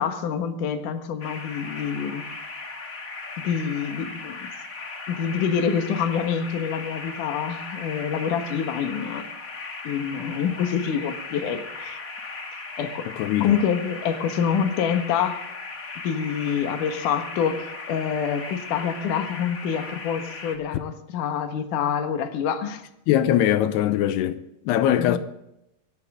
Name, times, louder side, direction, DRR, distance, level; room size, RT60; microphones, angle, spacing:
voice 1, 0.0-2.2 3.4-4.5 5.1-9.3 9.8-12.0 12.8-13.0 13.4-15.4 16.0-22.8 25.0-25.2, left 7 dB, 60° left, 2.7 m, -26 dB
sound 1, 1.2-20.6, left 3 dB, 40° left, 1.2 m, -37 dB
voice 2, 13.2-13.6 23.1-24.4 24.7-25.2, left 11 dB, 90° left, 2.9 m, -21 dB
25.0 x 11.5 x 3.7 m
omnidirectional pair, 4.7 m